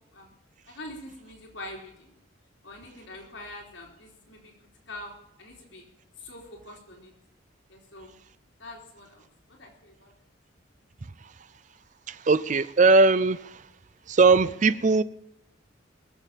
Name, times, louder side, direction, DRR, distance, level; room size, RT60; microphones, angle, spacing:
voice 1, 0.7-2.1 2.6-4.5 4.9-5.9 6.2-7.1 7.7-8.2 8.6-10.1, left 1 dB, 65° left, 3.4 m, -44 dB
voice 2, 12.1-13.6 14.1-15.0, right 3 dB, 40° right, 0.5 m, -20 dB
21.0 x 7.2 x 7.4 m
head